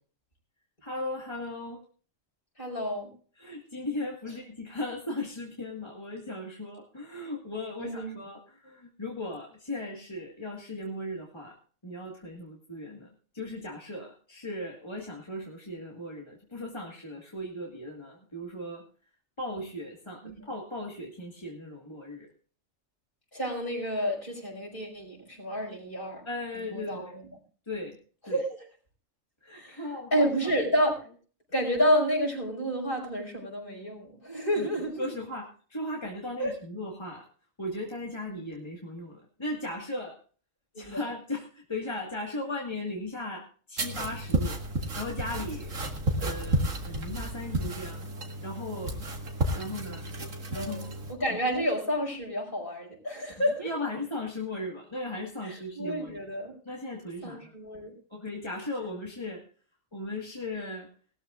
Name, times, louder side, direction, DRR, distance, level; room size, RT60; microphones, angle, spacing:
voice 1, 0.8-1.8 3.4-11.6 11.8-13.1 13.3-18.8 19.4-22.3 26.2-27.1 27.7-28.0 28.2-28.4 29.4-30.5 34.6-34.7 35.0-37.3 37.6-40.2 40.8-44.6 45.0-45.7 46.2-48.0 48.4-49.1 49.5-50.0 50.5-50.9 53.6-56.2 56.7-57.5 58.1-59.4 59.9-60.9, left 1 dB, 20° left, -2 dB, 1.9 m, -37 dB
voice 2, 2.6-3.1 7.8-8.1 20.2-20.4 23.3-26.2 26.5-27.3 28.3-28.4 29.5-30.9 31.5-35.1 36.4-36.5 40.7-41.0 50.5-53.7 55.4-56.5 57.2-57.9, equal, 40° left, -1 dB, 5.6 m, -30 dB
sound 1, 43.8-51.1, right 1 dB, 90° right, 2.3 m, -32 dB
19.5 x 13.5 x 2.5 m, 0.41 s
omnidirectional pair, 1.3 m